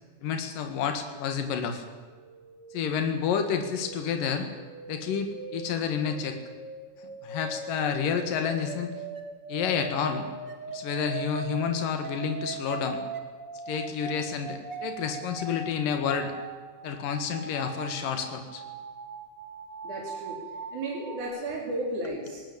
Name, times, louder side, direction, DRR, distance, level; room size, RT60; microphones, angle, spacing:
voice 1, 0.2-1.8 2.7-4.5 4.9-6.4 7.2-8.9 9.5-10.3 10.7-13.0 13.7-16.3 16.8-18.6, left 7 dB, 85° left, 7 dB, 3.4 m, -29 dB
sound 1, 2.1-21.2, right 4 dB, 35° right, 2.8 m, -41 dB
voice 2, 19.8-20.4 20.7-22.4, right 2 dB, 65° right, -3 dB, 5.2 m, -34 dB
20.5 x 18.5 x 8.6 m, 1.5 s
omnidirectional pair, 3.8 m